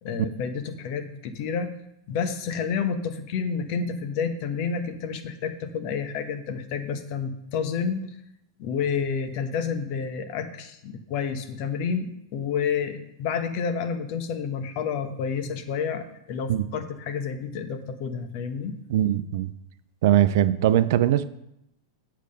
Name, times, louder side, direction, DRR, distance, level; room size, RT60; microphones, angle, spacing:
voice 1, 0.0-1.7 2.1-8.1 8.6-18.8, left 6 dB, 50° left, 7 dB, 1.2 m, -29 dB
voice 2, 18.9-19.5 20.0-21.2, right 12 dB, 60° right, 13 dB, 0.5 m, -21 dB
8.3 x 7.4 x 5.3 m, 0.80 s
figure-of-eight pair, 100°, 2 cm